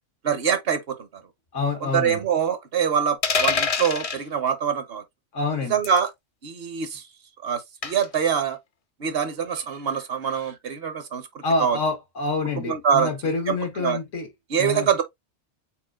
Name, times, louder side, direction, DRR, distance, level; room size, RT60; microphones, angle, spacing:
voice 1, 0.2-1.2 1.8-5.0 5.7-6.1 6.4-7.0 7.4-8.6 9.0-11.8 12.6-13.1 13.5-14.0 14.5-15.0, right 7 dB, 60° right, 0.9 m, -24 dB
voice 2, 1.5-2.2 5.3-5.7 11.4-14.3 14.6-14.9, left 3 dB, 85° left, 1.7 m, -27 dB
sound 1, 3.2-4.2 5.8-6.1 7.8-8.1, left 5 dB, 40° left, 0.5 m, -24 dB
4.4 x 4.1 x 2.3 m
omnidirectional pair, 1.2 m